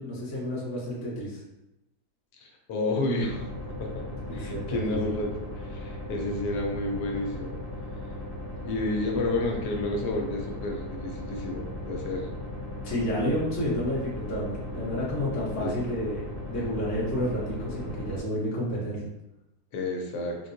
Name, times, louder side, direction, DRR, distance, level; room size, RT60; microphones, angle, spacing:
voice 1, 0.0-1.4 4.3-5.1 12.8-19.1, equal, 15° left, -7 dB, 0.6 m, -30 dB
voice 2, 2.4-3.5 3.8-4.0 4.3-5.3 5.6-7.5 8.6-12.3 15.6-15.8 19.7-20.4, left 2 dB, 80° left, 1 dB, 1.1 m, -30 dB
sound 1, 3.2-18.2, left 1 dB, 55° right, 1.1 m, -37 dB
3.9 x 2.3 x 2.6 m, 0.89 s
omnidirectional pair, 1.8 m